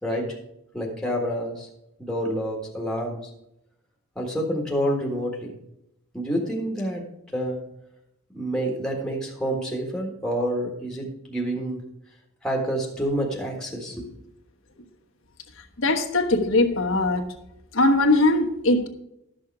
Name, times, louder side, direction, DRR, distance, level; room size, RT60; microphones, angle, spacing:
voice 1, 0.0-0.4 0.7-1.7 2.0-3.2 4.1-5.5 6.1-7.0 7.3-7.6 8.3-11.8 12.4-14.1, equal, 5° left, -1 dB, 1.6 m, -28 dB
voice 2, 15.8-17.3 17.7-18.9, left 2 dB, 65° left, 3 dB, 1.2 m, -20 dB
12.0 x 6.4 x 4.7 m, 0.82 s
head